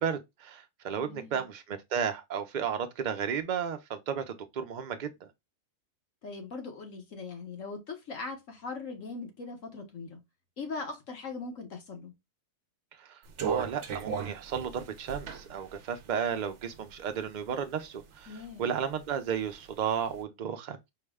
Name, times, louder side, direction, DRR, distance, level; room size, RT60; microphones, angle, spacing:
voice 1, 0.0-5.3 13.0-13.2 13.4-20.8, right 7 dB, 50° right, 0.6 m, -33 dB
voice 2, 1.0-1.5 6.2-10.2 10.6-12.1 18.3-18.7, left 4 dB, 70° left, 1.4 m, -40 dB
sound 1, 13.3-17.2 17.7-18.7 19.0-20.0, right 6 dB, 70° right, 0.9 m, -36 dB
4.6 x 2.1 x 3.5 m
omnidirectional pair, 1.4 m